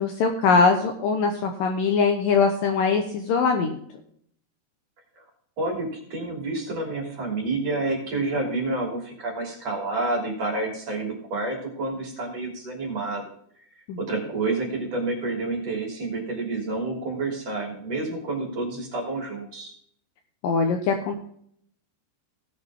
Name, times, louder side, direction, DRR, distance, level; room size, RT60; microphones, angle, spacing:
voice 1, 0.0-3.8 13.9-14.0 20.4-21.2, left 4 dB, 75° left, 5 dB, 2.2 m, -22 dB
voice 2, 5.6-13.2 13.7-19.7, right 2 dB, 40° right, 0 dB, 3.9 m, -29 dB
18.0 x 6.6 x 3.5 m, 0.66 s
omnidirectional pair, 4.9 m